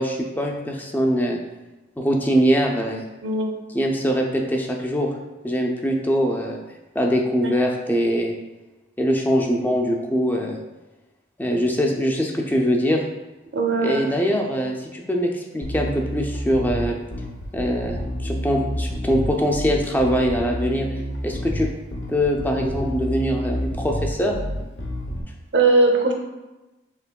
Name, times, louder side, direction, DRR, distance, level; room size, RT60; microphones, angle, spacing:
voice 1, 0.0-1.4 2.0-3.0 3.7-5.1 5.4-6.6 6.9-8.4 9.0-10.6 11.4-13.0 13.8-17.0 17.5-20.9 21.2-21.7 22.1-24.4, equal, 10° left, 1 dB, 0.4 m, -22 dB
voice 2, 13.5-14.0 25.5-26.1, right 3 dB, 75° right, 3 dB, 0.7 m, -19 dB
Bass guitar, 15.6-25.2, equal, 80° left, 0.8 m, -29 dB
5.7 x 3.5 x 2.2 m, 1.1 s
head